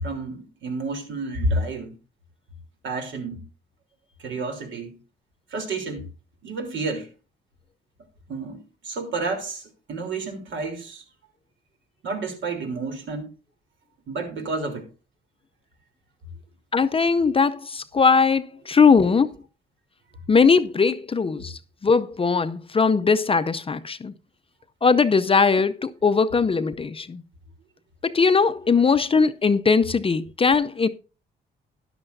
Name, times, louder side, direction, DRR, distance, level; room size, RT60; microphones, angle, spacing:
voice 1, 0.0-1.9 2.8-3.4 4.2-5.0 5.5-6.1 6.4-7.1 8.3-11.0 12.0-13.3 14.1-14.9, right 2 dB, 70° right, 3.5 m, -30 dB
voice 2, 16.7-19.3 20.3-24.1 24.8-27.2 28.0-30.9, left 5 dB, 30° left, 0.6 m, -20 dB
13.0 x 11.0 x 2.6 m
cardioid pair, 90°, 20 cm